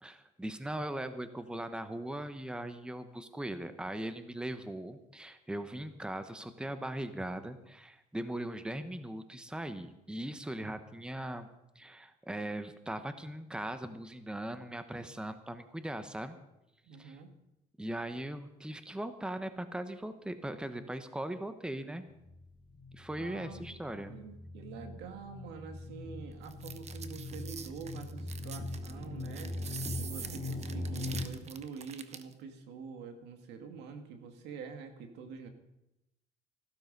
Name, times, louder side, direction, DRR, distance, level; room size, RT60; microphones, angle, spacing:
voice 1, 0.0-11.5 11.7-16.4 17.0-17.2 17.8-22.0 22.9-24.1, right 1 dB, 5° right, 10 dB, 1.1 m, -39 dB
voice 2, 16.9-17.3 23.2-23.7 24.1-29.5 30.0-35.5, right 5 dB, 90° right, 6 dB, 2.2 m, -46 dB
sound 1, 22.1-31.2, left 2 dB, 20° right, 4.5 m, -41 dB
sound 2, 26.4-32.3, right 7 dB, 40° right, 1.1 m, -45 dB
15.5 x 12.5 x 5.4 m, 0.89 s
cardioid pair, 110°, 17 cm